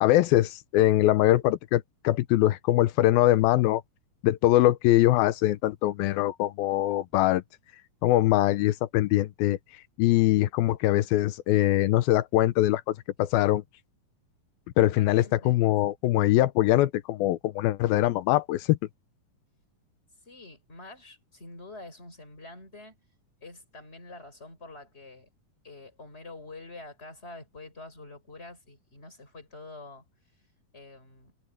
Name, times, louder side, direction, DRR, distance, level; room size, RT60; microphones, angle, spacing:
voice 1, 0.0-3.8 4.2-7.4 8.0-9.6 10.0-13.6 14.8-18.8, left 15 dB, 85° left, 2.6 m, -23 dB
voice 2, 14.9-15.7 20.3-23.0 23.4-25.3 25.6-30.0 30.7-31.3, left 2 dB, 15° left, 5.9 m, -46 dB
omnidirectional pair, 4.1 m